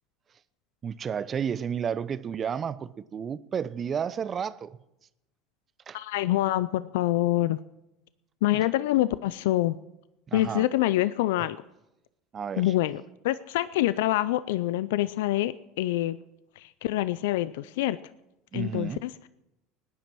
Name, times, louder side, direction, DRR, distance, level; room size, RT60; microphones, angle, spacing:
voice 1, 0.8-4.8 5.9-6.0 10.3-10.6 12.3-12.7 18.5-19.0, right 7 dB, 35° right, 0.7 m, -32 dB
voice 2, 5.9-7.6 8.4-9.8 10.3-11.6 12.6-16.2 16.5-18.0 18.5-19.3, left 15 dB, 75° left, 0.4 m, -26 dB
18.5 x 10.0 x 6.0 m
hypercardioid pair, 85°, 0 cm